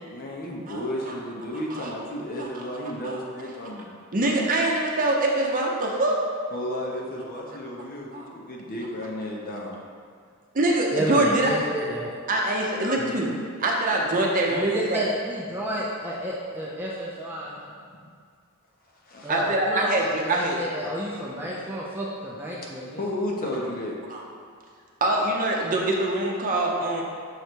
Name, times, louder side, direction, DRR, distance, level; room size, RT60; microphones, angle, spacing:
voice 1, 0.0-3.9 6.5-9.7 19.1-19.3 23.0-23.9, left 1 dB, 45° left, -2 dB, 0.8 m, -33 dB
voice 2, 0.7-1.1 1.8-1.9 2.4-2.5 3.0-3.2 4.1-6.1 8.1-8.3 10.5-11.5 12.3-13.3 13.6-15.0 19.3-20.6 24.1-24.2 25.0-27.0, right 1 dB, 40° right, -1 dB, 0.7 m, -24 dB
voice 3, 10.9-12.1 14.5-17.5 19.2-22.9, right 1 dB, 10° right, -5 dB, 0.5 m, -30 dB
6.5 x 3.2 x 4.5 m, 2.1 s
head